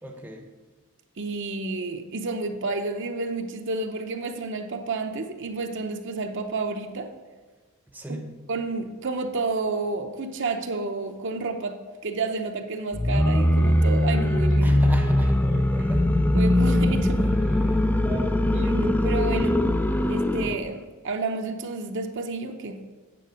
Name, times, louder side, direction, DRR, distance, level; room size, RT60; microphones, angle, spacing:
voice 1, 0.0-0.5 7.9-8.4 14.6-16.1 17.2-18.4, right 1 dB, 10° right, 3 dB, 0.7 m, -37 dB
voice 2, 1.2-7.1 8.1-8.2 8.5-11.8 12.0-14.8 16.3-17.3 18.5-19.6 20.1-22.8, right 3 dB, 55° right, 5 dB, 0.7 m, -30 dB
sound 1, 12.9-20.6, left 1 dB, 10° left, 0.3 m, -21 dB
9.2 x 7.2 x 5.0 m, 1.4 s
head